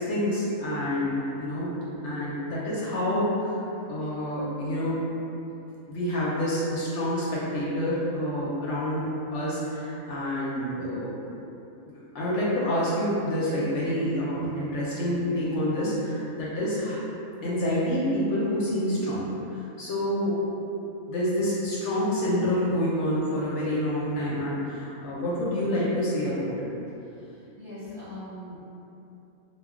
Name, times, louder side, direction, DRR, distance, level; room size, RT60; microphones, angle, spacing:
voice 1, 0.0-1.8 2.0-3.6 3.9-5.0 5.9-11.1 11.8-17.0 17.4-20.4 21.1-26.7, left 1 dB, 65° left, -7 dB, 0.8 m, -28 dB
voice 2, 27.0-28.6, left 1 dB, 50° right, -11 dB, 0.7 m, -42 dB
2.2 x 2.1 x 3.5 m, 2.9 s
omnidirectional pair, 1.4 m